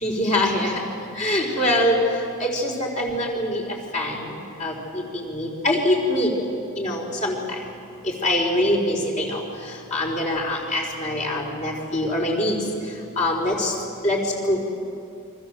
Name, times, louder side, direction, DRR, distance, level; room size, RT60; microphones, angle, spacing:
voice 1, 0.0-0.8 1.1-2.0 2.4-3.6 3.9-4.3 4.6-6.3 6.8-7.4 8.0-9.4 9.9-12.6 13.2-13.7 14.0-14.2 14.5-14.6, left 1 dB, 35° left, -1 dB, 4.4 m, -23 dB
29.0 x 24.0 x 7.6 m, 2.5 s
head